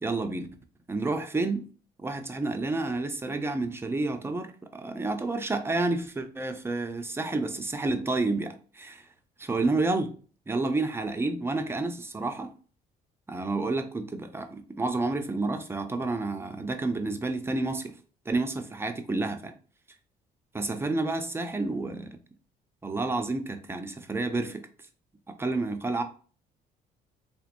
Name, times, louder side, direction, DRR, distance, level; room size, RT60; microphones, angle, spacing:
voice 1, 0.0-0.5 0.9-1.7 2.0-9.1 9.4-10.1 10.5-12.5 13.3-17.9 18.3-19.5 20.5-22.2 22.8-24.6 25.3-26.0, right 2 dB, 15° right, 0.4 m, -30 dB
3.5 x 2.9 x 2.5 m
cardioid pair, 110°, 17 cm